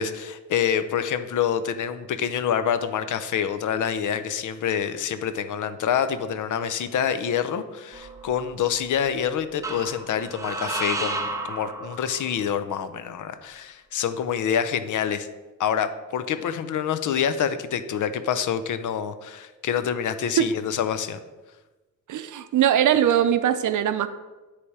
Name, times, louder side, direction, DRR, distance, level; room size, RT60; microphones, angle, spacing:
voice 1, 0.0-15.3 15.6-21.2, left 8 dB, 75° left, 11 dB, 0.6 m, -26 dB
sound 1, 7.9-8.7 9.6-12.5, right 2 dB, 10° right, 0.6 m, -32 dB
voice 2, 22.1-24.1, right 10 dB, 75° right, 11 dB, 0.5 m, -21 dB
9.8 x 3.4 x 4.7 m, 1.2 s
wide cardioid pair, 160°, 31 cm